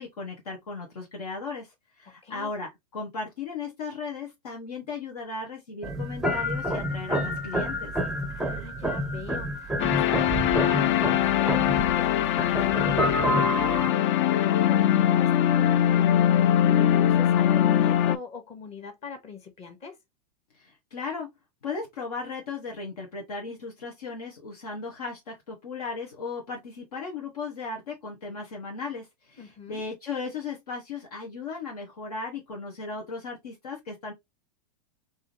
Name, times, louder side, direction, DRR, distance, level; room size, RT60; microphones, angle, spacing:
voice 1, 0.0-7.9 20.6-21.3 21.6-34.1, left 4 dB, 75° left, 1.1 m, -36 dB
sound 1, 5.8-13.9, right 1 dB, ahead, 0.5 m, -29 dB
voice 2, 8.3-20.0 29.4-29.8, left 5 dB, 30° left, 1.2 m, -41 dB
sound 2, 9.8-18.2, left 11 dB, 50° left, 0.4 m, -22 dB
3.5 x 2.7 x 3.0 m
hypercardioid pair, 100°, 20 cm